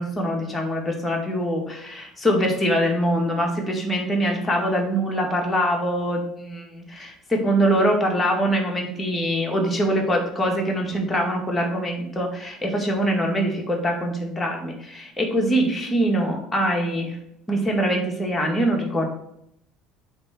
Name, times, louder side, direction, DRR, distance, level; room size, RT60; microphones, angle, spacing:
voice 1, 0.0-17.2 17.5-19.1, equal, 15° left, 0 dB, 2.1 m, -23 dB
8.5 x 3.7 x 4.4 m, 0.74 s
hypercardioid pair, 70°, 0 cm